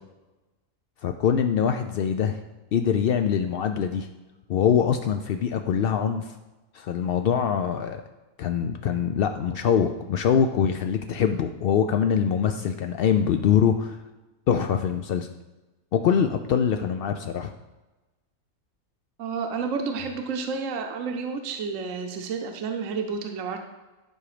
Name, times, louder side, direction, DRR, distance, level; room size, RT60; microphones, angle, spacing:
voice 1, 1.0-2.4 2.7-4.1 4.5-6.3 6.7-8.0 8.4-14.0 14.5-15.3 15.9-17.5, left 8 dB, 75° left, 6 dB, 0.5 m, -23 dB
voice 2, 19.2-23.6, right 5 dB, 65° right, 5 dB, 1.1 m, -30 dB
11.0 x 5.0 x 4.9 m, 1.1 s
omnidirectional pair, 1.5 m